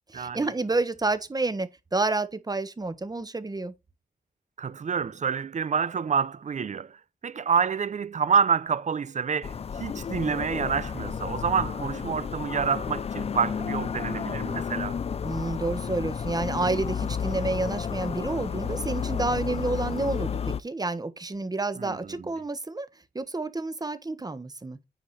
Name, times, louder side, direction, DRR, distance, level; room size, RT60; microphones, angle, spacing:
voice 1, 0.1-3.7 15.2-22.9 23.1-24.8, right 3 dB, 25° right, 1.2 m, -29 dB
voice 2, 4.6-7.0 7.2-15.0 21.8-22.3, right 6 dB, 60° right, 0.6 m, -28 dB
sound 1, 9.4-20.6, left 7 dB, 45° left, 0.4 m, -32 dB
9.2 x 4.9 x 4.1 m
wide cardioid pair, 80°, 14 cm